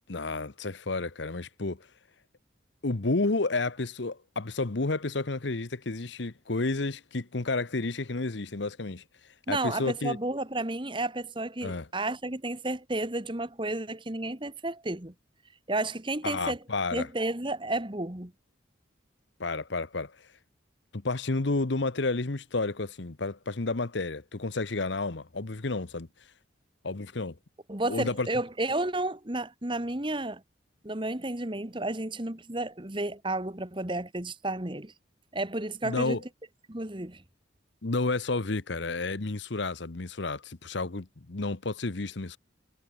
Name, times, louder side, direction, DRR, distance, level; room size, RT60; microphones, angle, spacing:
voice 1, 0.1-1.8 2.8-9.0 9.5-10.2 11.6-11.9 16.2-17.1 19.4-20.1 20.9-26.1 26.8-27.3 27.9-28.3 35.8-36.2 37.8-42.4, left 3 dB, 65° left, 1.1 m, -31 dB
voice 2, 9.5-15.1 15.7-16.6 16.9-18.3 27.7-30.4 30.8-34.9 35.3-36.2 36.7-37.2, right 2 dB, 25° right, 1.6 m, -32 dB
head